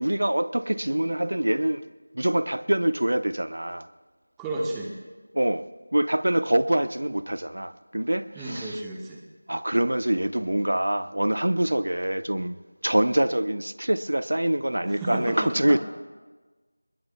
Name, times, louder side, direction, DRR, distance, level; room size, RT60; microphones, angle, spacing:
voice 1, 0.0-1.8 2.1-3.9 5.3-5.6 5.9-8.8 9.5-12.6 12.8-15.8, right 1 dB, 70° right, 0.6 m, -25 dB
voice 2, 4.4-4.9 8.3-9.2 14.9-15.8, right 2 dB, 5° right, 1.0 m, -32 dB
27.5 x 21.0 x 2.3 m
figure-of-eight pair, 170°, 0 cm